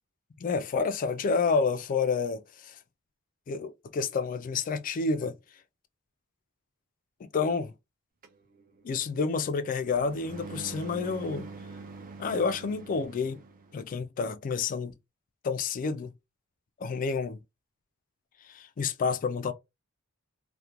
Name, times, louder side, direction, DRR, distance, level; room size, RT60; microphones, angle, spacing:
voice 1, 0.4-2.8 3.5-5.3 7.3-7.7 8.8-11.5 12.2-13.4 13.7-14.9 15.4-16.1 16.8-17.4 18.5-19.5, left 5 dB, 40° left, 0.3 m, -29 dB
sound 1, 8.2-13.8, right 3 dB, 40° right, 0.4 m, -45 dB
2.4 x 2.1 x 2.9 m
head